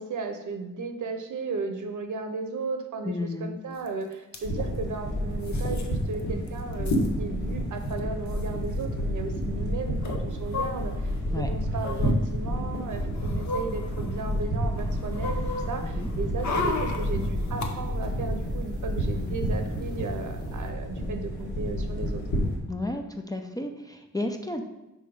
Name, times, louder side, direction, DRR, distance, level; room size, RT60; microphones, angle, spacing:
voice 1, 0.0-3.1 3.4-22.2, right 4 dB, 70° right, 6 dB, 0.8 m, -35 dB
voice 2, 3.0-3.6 11.3-11.5 15.8-16.1 22.7-24.6, left 2 dB, 10° left, 4 dB, 0.4 m, -32 dB
sound 1, 3.9-4.0 4.1-4.4 5.4-5.9 6.2-6.3 6.5-7.1 7.9-8.0 8.3-8.5 10.0-11.2 11.8-12.1 12.8-14.4 14.8-17.7 18.0-18.1, left 3 dB, 60° left, 0.8 m, -34 dB
sound 2, 4.4-22.6, equal, 75° left, 1.6 m, -30 dB
sound 3, 15.7-20.7, equal, 15° right, 0.8 m, -43 dB
4.9 x 4.4 x 5.2 m, 0.98 s
wide cardioid pair, 130°, 32 cm